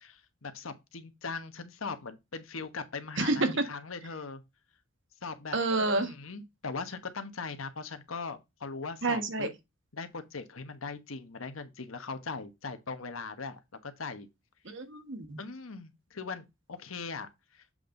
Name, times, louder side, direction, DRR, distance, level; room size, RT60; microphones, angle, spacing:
voice 1, 0.0-4.4 5.2-5.6 5.9-9.5 9.9-14.3 15.4-17.7, left 4 dB, 85° left, 1.1 m, -40 dB
voice 2, 3.2-3.5 5.5-6.1 9.0-9.5 14.6-15.4, right 2 dB, 60° right, 1.3 m, -29 dB
7.7 x 3.9 x 3.8 m
head